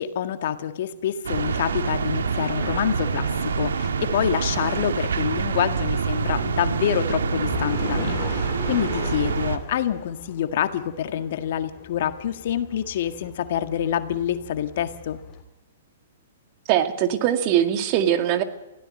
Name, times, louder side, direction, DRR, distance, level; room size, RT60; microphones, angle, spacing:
voice 1, 0.0-15.2, left 10 dB, 60° left, 9 dB, 1.8 m, -27 dB
sound 1, 1.2-9.6, right 5 dB, 80° right, 2.0 m, -26 dB
sound 2, 6.4-15.4, left 7 dB, 30° left, 3.4 m, -39 dB
voice 2, 16.7-18.4, right 10 dB, 40° right, 8 dB, 2.1 m, -21 dB
24.0 x 16.0 x 7.8 m, 0.96 s
hypercardioid pair, 125°, 0 cm